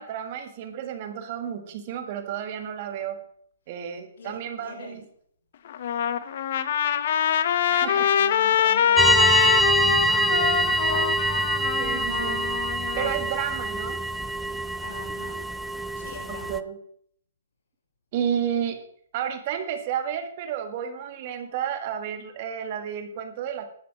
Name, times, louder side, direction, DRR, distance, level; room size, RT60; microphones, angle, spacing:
voice 1, 0.0-3.2 3.7-5.0 7.7-8.1 11.8-12.4 12.7-14.1 16.3-16.8 18.1-18.8 19.1-23.7, right 9 dB, 40° right, 7 dB, 1.7 m, -31 dB
voice 2, 4.1-5.0 7.9-11.3 14.8-15.4 15.9-16.6 18.4-18.5, left 3 dB, 75° left, 0 dB, 5.4 m, -40 dB
Trumpet, 5.7-13.1, left 9 dB, 55° left, 0.9 m, -24 dB
sound 1, 9.0-16.6, right 1 dB, 5° right, 0.4 m, -24 dB
12.0 x 8.3 x 6.1 m, 0.63 s
hypercardioid pair, 150°, 0 cm